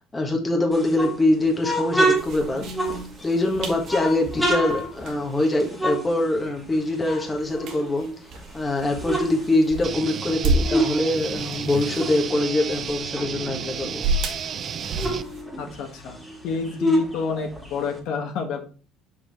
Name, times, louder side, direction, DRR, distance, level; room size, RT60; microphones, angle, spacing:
voice 1, 0.1-2.6 3.2-14.0, left 2 dB, 15° left, 1 dB, 1.4 m, -24 dB
sound 1, 0.7-3.4 3.8-6.7 7.0-8.3 8.7-11.0 11.3-13.9 14.2-14.3 14.6-18.0, right 1 dB, ahead, 1.7 m, -27 dB
sound 2, 2.2-15.4, right 2 dB, 60° right, 1.3 m, -32 dB
sound 3, 9.8-15.2, right 7 dB, 40° right, 0.4 m, -32 dB
voice 2, 15.6-16.2 16.4-18.7, left 5 dB, 70° left, 3 dB, 1.3 m, -29 dB
5.7 x 4.9 x 3.5 m, 0.37 s
cardioid pair, 120°, 0 cm